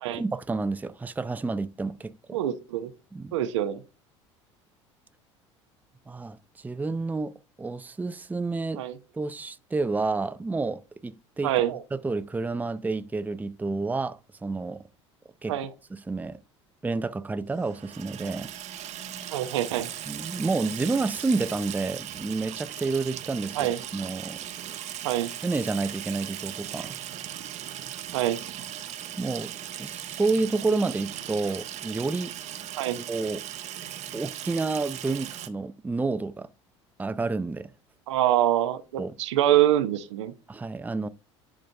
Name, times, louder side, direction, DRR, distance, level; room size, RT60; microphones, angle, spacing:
voice 1, 0.1-2.4 3.1-3.4 6.1-7.3 7.6-8.8 9.1-11.5 11.9-14.8 15.4-15.6 15.9-16.4 16.8-18.5 20.1-24.7 25.4-26.9 29.2-29.5 29.8-32.3 33.1-33.4 34.1-36.5 37.0-37.7 39.0-39.1 40.5-41.1, right 3 dB, 10° right, 0.5 m, -29 dB
voice 2, 2.3-2.9 3.3-3.8 8.8-9.0 11.4-11.8 15.5-15.7 19.3-19.9 23.6-23.8 25.0-25.3 28.1-28.4 32.7-33.0 38.1-40.3, right 12 dB, 75° right, 0.9 m, -25 dB
Water tap faucet / Sink (filling or washing), 17.6-35.5, right 11 dB, 50° right, 1.0 m, -38 dB
10.5 x 3.9 x 3.3 m
hypercardioid pair, 70°, 15 cm